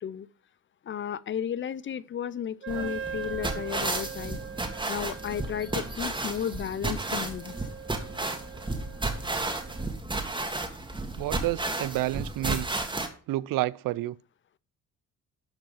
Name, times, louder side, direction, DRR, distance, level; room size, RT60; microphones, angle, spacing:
voice 1, 0.9-4.4 4.9-7.5, left 9 dB, 35° left, 0.5 m, -33 dB
Wind instrument woodwind instrument, 2.6-10.0, right 6 dB, 40° right, 0.9 m, -42 dB
sound 1, 2.7-13.1, right 2 dB, 15° right, 1.9 m, -33 dB
voice 2, 11.2-12.7 13.3-14.1, right 16 dB, 75° right, 0.5 m, -29 dB
12.0 x 5.2 x 5.7 m
cardioid pair, 110°, 34 cm